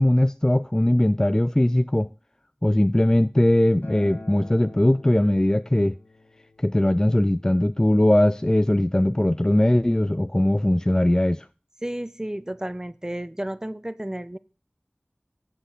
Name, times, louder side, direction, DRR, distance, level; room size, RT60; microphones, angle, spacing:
voice 1, 0.0-2.1 2.6-6.0 6.6-11.5, left 1 dB, 20° left, 0.3 m, -20 dB
Acoustic guitar, 3.8-9.0, left 2 dB, 80° left, 2.2 m, -47 dB
voice 2, 11.8-14.4, right 1 dB, 20° right, 0.6 m, -32 dB
8.1 x 7.8 x 3.9 m
wide cardioid pair, 45°, 3 cm